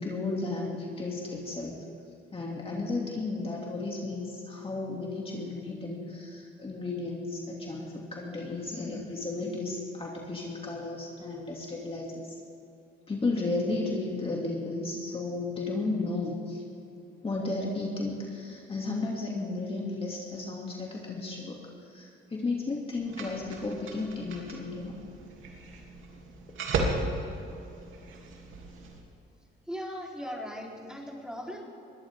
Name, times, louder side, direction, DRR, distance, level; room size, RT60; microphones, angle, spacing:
voice 1, 0.0-1.8 2.3-12.3 13.1-16.6 17.2-25.0, left 3 dB, 30° left, -2 dB, 2.6 m, -34 dB
sound 1, 22.9-29.0, right 3 dB, 80° right, 2.8 m, -36 dB
voice 2, 29.7-31.6, equal, 5° right, -2 dB, 3.8 m, -38 dB
22.0 x 17.5 x 3.7 m, 2.8 s
cardioid pair, 90°, 20 cm